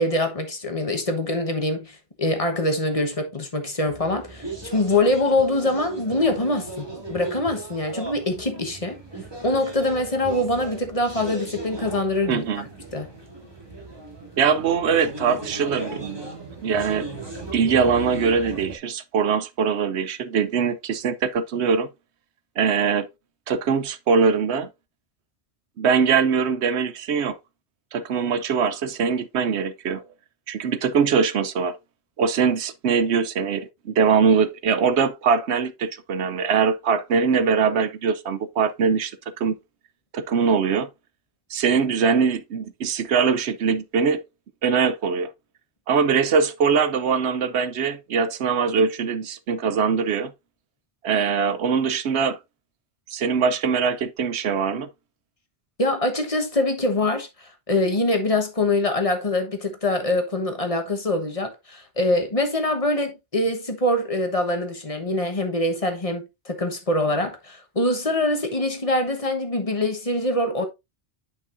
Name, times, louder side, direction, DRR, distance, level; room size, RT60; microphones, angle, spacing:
voice 1, 0.0-9.0 9.4-12.6 12.9-13.1 55.8-70.7, left 1 dB, 35° left, 1.3 m, -24 dB
sound 1, 3.9-18.8, right 3 dB, 25° right, 2.3 m, -37 dB
voice 2, 12.3-12.7 14.4-16.2 16.6-17.1 17.5-21.9 22.6-23.1 23.5-24.7 25.8-27.4 27.9-30.0 30.5-31.8 32.2-39.1 39.4-39.5 40.1-40.9 41.5-44.2 44.6-45.3 45.9-50.3 51.0-52.4 53.1-54.9, right 6 dB, 80° right, 1.0 m, -22 dB
9.6 x 5.4 x 2.5 m
omnidirectional pair, 1.1 m